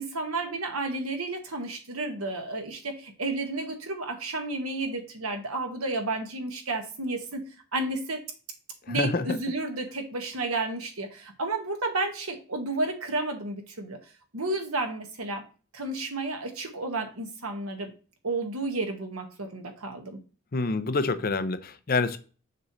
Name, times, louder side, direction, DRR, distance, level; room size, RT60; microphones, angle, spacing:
voice 1, 0.0-7.4 7.7-8.2 8.9-14.0 14.3-15.4 15.7-17.9 18.2-20.2, right 2 dB, 90° right, 4 dB, 1.6 m, -32 dB
voice 2, 8.9-9.2 20.5-22.2, left 3 dB, 45° left, 12 dB, 0.6 m, -27 dB
6.7 x 6.4 x 3.1 m, 0.36 s
head